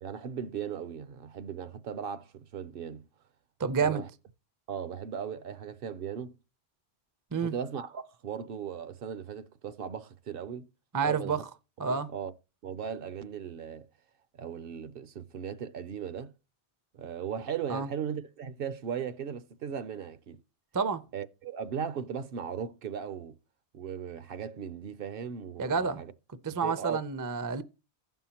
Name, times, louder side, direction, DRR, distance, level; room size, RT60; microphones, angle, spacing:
voice 1, 0.0-3.1 3.8-4.1 4.7-6.3 7.4-10.7 11.0-11.4 11.9-12.3 12.6-13.9 14.4-16.3 16.9-20.4 21.1-23.4 23.7-26.1 26.6-27.0, right 7 dB, 65° right, 0.7 m, -37 dB
voice 2, 3.6-4.0 7.3-7.5 10.9-11.4 11.8-12.1 17.7-17.9 20.7-21.0 25.6-26.0 26.4-27.6, right 5 dB, 30° right, 0.4 m, -29 dB
15.5 x 5.5 x 2.9 m
omnidirectional pair, 1.1 m